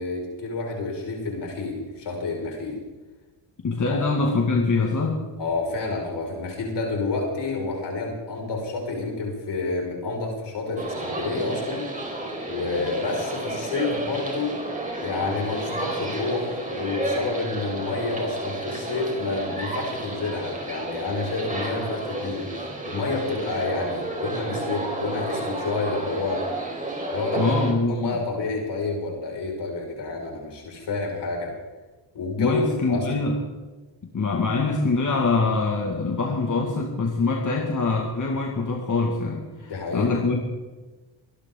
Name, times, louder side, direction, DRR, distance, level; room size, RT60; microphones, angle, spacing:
voice 1, 0.0-2.8 3.9-4.0 5.4-11.9 12.5-14.6 15.0-26.4 27.1-27.5 27.9-31.5 32.1-33.1 39.6-40.1, left 3 dB, 60° left, 0 dB, 5.9 m, -29 dB
voice 2, 3.6-5.2 27.4-28.2 32.4-33.4 34.1-40.4, left 3 dB, 40° left, 0 dB, 2.3 m, -24 dB
sound 1, 10.8-27.7, right 2 dB, 15° right, 4.5 m, -31 dB
25.0 x 12.0 x 3.9 m, 1.2 s
cardioid pair, 80°, 47 cm